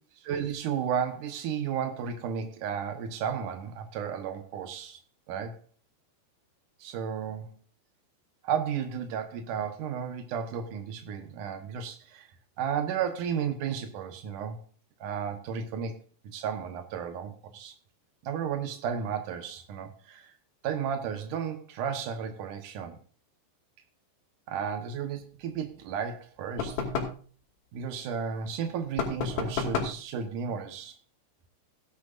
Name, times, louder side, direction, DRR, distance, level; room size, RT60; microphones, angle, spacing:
voice 1, 0.2-5.0 5.3-5.6 6.8-7.4 8.4-12.3 12.6-14.6 15.0-15.9 16.2-17.7 18.2-20.3 20.6-23.0 24.5-26.8 27.7-30.9, right 7 dB, 85° right, 6 dB, 1.8 m, -33 dB
sound 1, 26.6-27.2 29.0-30.0, left 5 dB, 60° left, 4.3 m, -31 dB
17.5 x 10.5 x 2.6 m, 0.43 s
omnidirectional pair, 5.5 m